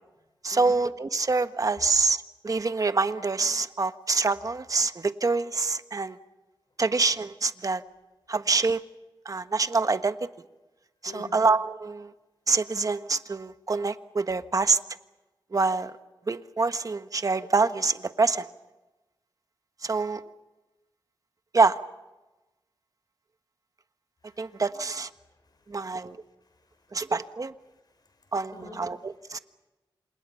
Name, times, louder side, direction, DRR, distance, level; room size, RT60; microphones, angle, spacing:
voice 1, 0.4-6.2 6.8-7.8 8.3-8.8 9.2-10.2 11.0-12.1 12.5-14.8 15.5-15.9 16.3-18.5 19.8-20.2 21.5-21.8 24.4-25.1 25.7-26.2 26.9-27.5 28.3-29.4, right 4 dB, 45° right, 10 dB, 1.4 m, -26 dB
voice 2, 11.1-11.4 24.3-24.6 25.2-25.7 26.6-27.1 28.0-28.8 29.3-29.4, left 3 dB, 55° left, 6 dB, 5.9 m, -48 dB
29.0 x 27.0 x 5.7 m, 1.1 s
wide cardioid pair, 80°, 8 cm